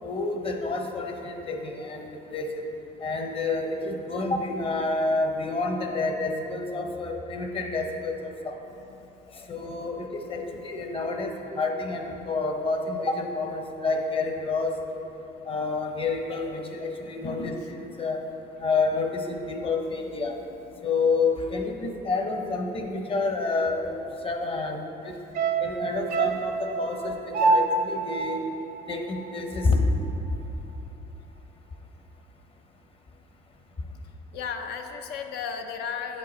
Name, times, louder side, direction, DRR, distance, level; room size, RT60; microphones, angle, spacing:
voice 1, 0.0-2.5 3.0-8.6 9.3-15.0 15.4-18.2 18.6-20.3 20.8-25.1 25.6-28.4 28.9-29.8, left 3 dB, 35° left, 3 dB, 0.8 m, -29 dB
voice 2, 8.7-9.5 9.8-9.9 10.5-10.7 19.8-20.1 20.8-20.9 25.1-25.5 34.3-36.2, left 6 dB, 75° left, 5 dB, 0.6 m, -36 dB
sound 1, 25.3-29.7 30.0-30.1, right 4 dB, 65° right, 0.7 m, -27 dB
8.3 x 5.3 x 4.2 m, 3.0 s
cardioid pair, 110°, 17 cm